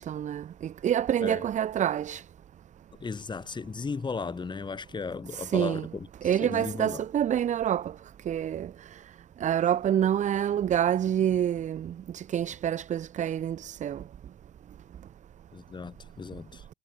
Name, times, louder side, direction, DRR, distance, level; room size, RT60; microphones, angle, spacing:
voice 1, 0.0-2.2 5.3-5.8 6.2-7.9 8.3-8.7 9.4-14.0, right 10 dB, 45° right, 0.9 m, -27 dB
voice 2, 3.0-7.0 15.5-16.7, left 4 dB, 25° left, 7.1 m, -36 dB
cardioid pair, 110°, 17 cm